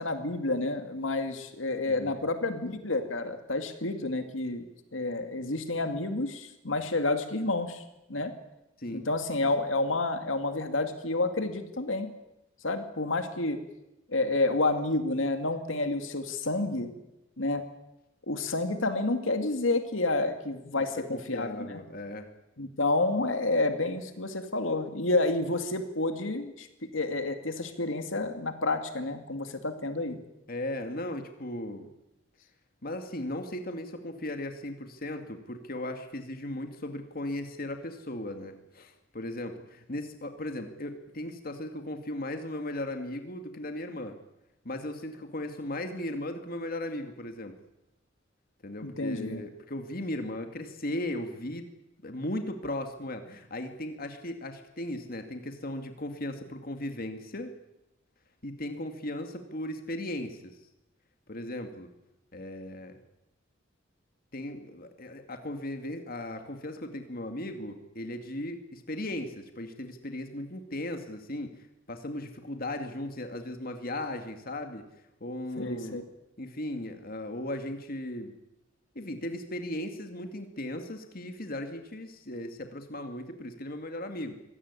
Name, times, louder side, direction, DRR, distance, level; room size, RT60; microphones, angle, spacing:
voice 1, 0.0-4.6 4.9-7.8 8.1-8.3 8.9-12.1 12.6-13.6 14.1-16.9 17.4-17.6 18.3-21.8 22.6-26.7 26.9-30.2 48.8-49.4 75.6-76.0, left 2 dB, 80° left, 7 dB, 2.4 m, -29 dB
voice 2, 20.8-22.3 30.5-31.9 32.8-44.2 44.6-47.5 48.6-51.6 52.0-57.5 58.4-60.6 61.3-61.9 62.3-63.0 64.3-71.5 71.9-74.8 75.2-76.0 76.4-78.4 78.9-84.3, left 1 dB, 50° left, 6 dB, 2.3 m, -37 dB
25.0 x 17.5 x 9.8 m, 0.93 s
head